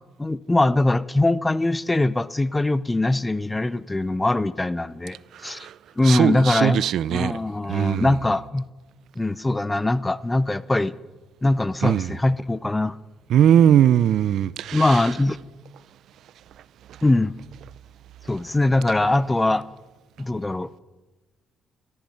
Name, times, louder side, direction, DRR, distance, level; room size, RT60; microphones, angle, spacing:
voice 1, 0.2-5.2 5.4-5.7 6.0-8.7 9.2-10.9 11.4-13.0 14.7-15.4 17.0-17.3 18.3-19.6 20.2-20.7, left 2 dB, 15° left, 0.6 m, -22 dB
voice 2, 6.1-7.3 7.7-8.1 11.8-12.1 13.3-14.8, right 10 dB, 75° right, 0.4 m, -19 dB
13.5 x 13.5 x 5.7 m
cardioid pair, 90°, 0 cm